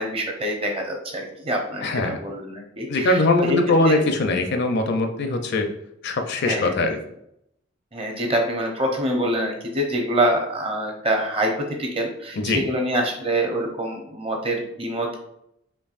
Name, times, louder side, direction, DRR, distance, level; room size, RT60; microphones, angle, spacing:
voice 1, 0.0-4.0 6.4-6.9 7.9-15.2, right 1 dB, 30° right, 1 dB, 0.7 m, -26 dB
voice 2, 1.8-2.2 2.9-5.7 6.0-7.0 12.4-12.6, left 2 dB, 60° left, 5 dB, 0.5 m, -21 dB
4.5 x 2.9 x 2.5 m, 0.76 s
head